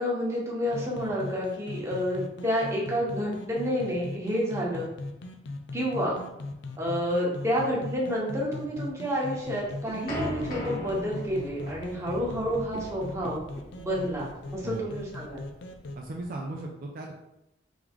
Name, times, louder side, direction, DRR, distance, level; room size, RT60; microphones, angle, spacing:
voice 1, 0.0-4.9 5.7-6.2 6.8-13.4 13.8-15.4, equal, 15° right, -5 dB, 1.1 m, -29 dB
sound 1, 0.7-16.0, left 2 dB, 65° left, 0.5 m, -40 dB
sound 2, 9.4-16.3, left 1 dB, 50° left, 1.3 m, -39 dB
voice 2, 15.9-17.1, right 2 dB, 50° right, 0 dB, 0.5 m, -36 dB
3.5 x 3.1 x 3.7 m, 0.86 s
head